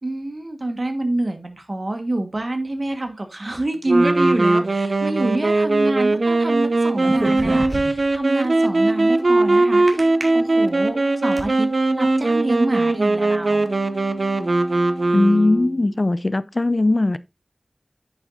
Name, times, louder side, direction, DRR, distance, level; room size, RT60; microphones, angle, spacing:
voice 1, 0.0-10.1 10.3-13.7, right 2 dB, 60° right, 1.6 m, -26 dB
sound 1, 3.9-15.7, right 2 dB, 75° right, 0.6 m, -20 dB
sound 2, 6.9-8.2 9.9-10.2 10.8-11.5, right 1 dB, 40° right, 2.3 m, -29 dB
Wind instrument woodwind instrument, 8.4-16.1, left 1 dB, 75° left, 2.3 m, -39 dB
voice 2, 15.1-17.2, left 2 dB, 50° left, 0.4 m, -19 dB
9.9 x 7.1 x 2.7 m
wide cardioid pair, 55°, 0 cm